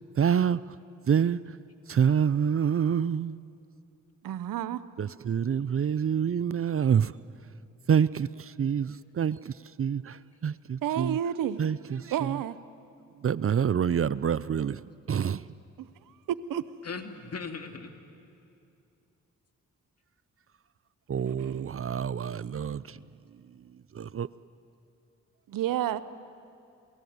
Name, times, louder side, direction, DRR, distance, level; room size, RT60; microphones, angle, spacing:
voice 1, 0.2-0.6 1.1-1.4 1.9-3.4 5.0-7.1 7.9-9.5 9.8-11.2 11.6-12.4 13.2-14.8 15.1-15.4 21.1-23.0 23.9-24.3, right 8 dB, 45° right, 0.5 m, -27 dB
voice 2, 4.2-4.8 10.8-11.7 12.1-12.6 15.8-15.9 16.3-16.6 21.4-21.7 25.5-26.0, right 10 dB, 85° right, 0.7 m, -30 dB
voice 3, 16.8-17.9 25.7-26.0, left 4 dB, 50° left, 2.2 m, -39 dB
28.0 x 18.0 x 9.5 m
supercardioid pair, 50°, 32 cm